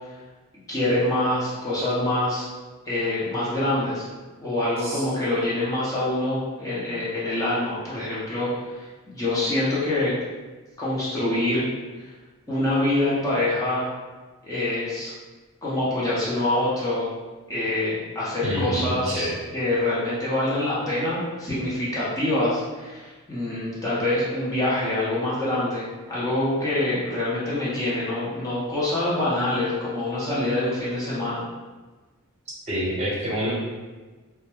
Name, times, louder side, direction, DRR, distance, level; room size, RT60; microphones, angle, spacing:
voice 1, 0.7-2.5 2.9-4.0 4.4-10.2 10.8-11.7 12.0-12.1 12.5-13.9 14.4-15.1 15.6-17.1 17.5-19.3 19.5-31.4, left 1 dB, 15° left, -9 dB, 0.6 m, -25 dB
voice 2, 18.4-19.4 32.7-33.5, equal, 30° right, -6 dB, 0.8 m, -27 dB
2.2 x 2.1 x 3.0 m, 1.3 s
head